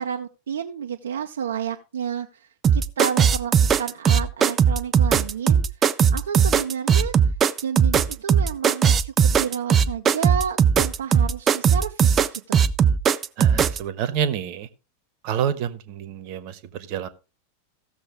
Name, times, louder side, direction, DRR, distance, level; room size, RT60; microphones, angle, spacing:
voice 1, 0.0-5.6 5.9-7.1 7.6-12.6, right 8 dB, 65° right, 4 dB, 0.6 m, -31 dB
sound 1, 2.6-13.8, right 7 dB, 25° right, 0.5 m, -18 dB
voice 2, 13.4-14.7 15.2-17.1, right 9 dB, 45° right, 14 dB, 1.1 m, -28 dB
15.5 x 7.0 x 3.7 m, 0.31 s
figure-of-eight pair, 90°, 0 cm